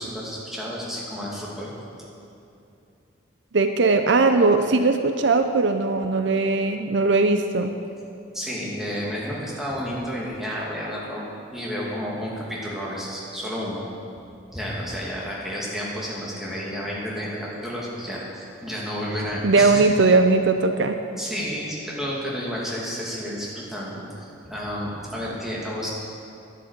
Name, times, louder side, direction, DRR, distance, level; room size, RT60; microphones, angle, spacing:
voice 1, 0.0-1.7 8.3-13.9 14.5-19.8 21.2-26.0, equal, ahead, -6 dB, 2.5 m, -31 dB
voice 2, 3.5-7.7 19.4-21.0, right 3 dB, 65° right, 7 dB, 0.6 m, -19 dB
11.5 x 10.5 x 8.2 m, 2.7 s
head